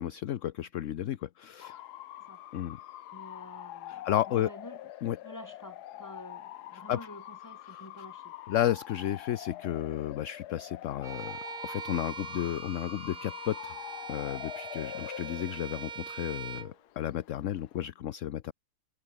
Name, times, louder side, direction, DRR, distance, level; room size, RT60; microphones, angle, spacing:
voice 1, 0.0-1.8 2.5-2.8 3.9-4.5 5.0-5.2 6.7-7.0 7.7-7.8 8.5-13.7 14.1-18.5, left 11 dB, 60° left, 0.9 m, -33 dB
Bark / Motor vehicle (road) / Siren, 1.6-17.9, left 13 dB, 80° left, 1.3 m, -45 dB
voice 2, 3.1-4.8 5.2-8.3, left 1 dB, 10° left, 4.5 m, -49 dB
Bowed string instrument, 11.0-16.7, right 7 dB, 70° right, 2.0 m, -42 dB
omnidirectional pair, 1.7 m